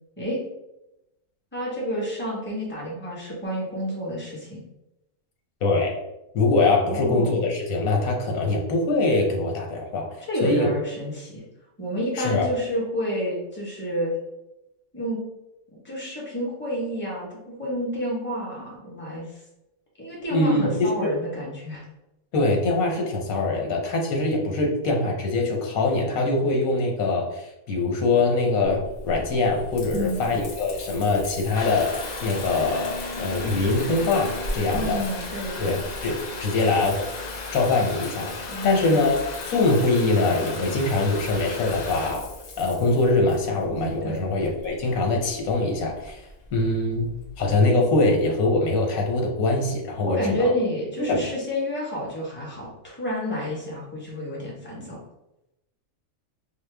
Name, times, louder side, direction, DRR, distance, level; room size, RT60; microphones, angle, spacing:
voice 1, 1.5-4.6 6.8-7.4 10.2-11.4 11.8-14.1 14.9-15.2 15.8-19.4 20.0-21.8 29.9-30.4 34.7-35.8 38.5-39.1 44.0-44.2 50.0-55.0, equal, 10° left, -4 dB, 0.9 m, -29 dB
voice 2, 5.6-6.0 6.3-10.1 10.4-10.7 12.2-12.5 20.3-20.9 22.3-35.0 35.6-37.0 37.5-39.2 39.5-42.2 42.6-46.2 46.5-50.5 51.0-51.2, left 2 dB, 90° left, 1 dB, 1.2 m, -23 dB
Water tap faucet / Bathtub (filling or washing) / Trickle dribble, 28.6-47.5, left 2 dB, 70° left, 0.4 m, -35 dB
4.9 x 2.1 x 3.3 m, 0.91 s
omnidirectional pair, 1.4 m